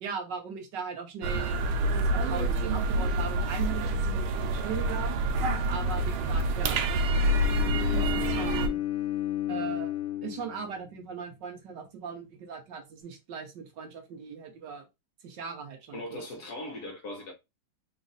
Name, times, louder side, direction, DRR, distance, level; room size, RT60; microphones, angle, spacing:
voice 1, 0.0-5.2 5.7-6.8 7.9-8.8 9.5-9.9 10.2-14.8 15.2-16.2, right 6 dB, 65° right, 1.4 m, -39 dB
sound 1, 1.2-8.7, right 1 dB, 85° right, 1.5 m, -27 dB
Bowed string instrument, 7.2-11.2, left 13 dB, 85° left, 1.6 m, -33 dB
voice 2, 15.9-17.3, left 1 dB, 60° left, 1.3 m, -39 dB
4.0 x 2.4 x 3.9 m
omnidirectional pair, 2.2 m